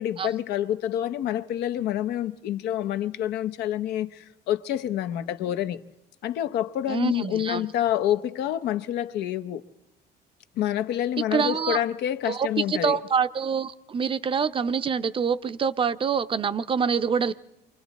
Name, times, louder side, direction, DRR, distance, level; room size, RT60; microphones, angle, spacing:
voice 1, 0.0-5.8 6.2-9.6 10.6-13.0, left 11 dB, 80° left, 0.8 m, -27 dB
voice 2, 6.9-7.7 11.3-11.8 12.3-17.3, right 6 dB, 30° right, 0.6 m, -26 dB
28.5 x 24.0 x 4.1 m
cardioid pair, 110°, 17 cm